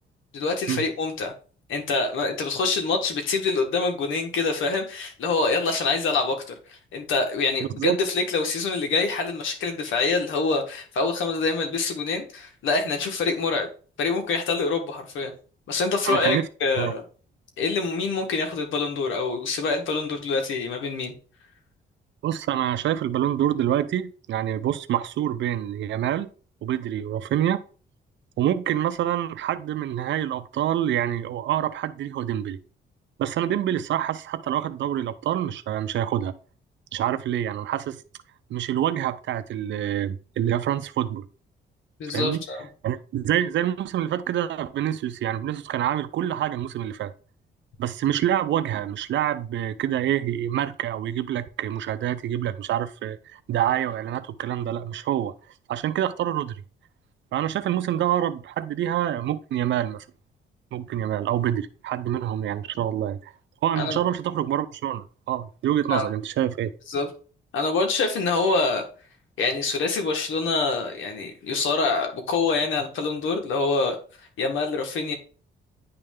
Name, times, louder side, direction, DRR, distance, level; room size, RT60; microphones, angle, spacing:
voice 1, 0.3-1.3 1.7-13.7 14.0-15.3 15.7-17.0 17.6-21.1 42.0-42.7 63.8-64.0 65.9-66.1 66.9-67.1 67.5-68.8 69.4-74.0 74.4-75.1, left 4 dB, 80° left, 1.6 m, -25 dB
voice 2, 16.1-16.5 16.8-16.9 22.2-26.3 26.6-27.6 28.4-32.6 33.2-36.3 36.9-38.0 38.5-41.3 42.1-42.4 42.8-47.1 47.8-55.3 55.7-56.6 57.3-60.0 60.7-63.3 63.6-66.7, right 11 dB, 70° right, 0.6 m, -26 dB
9.6 x 3.3 x 3.6 m
cardioid pair, 90°, 20 cm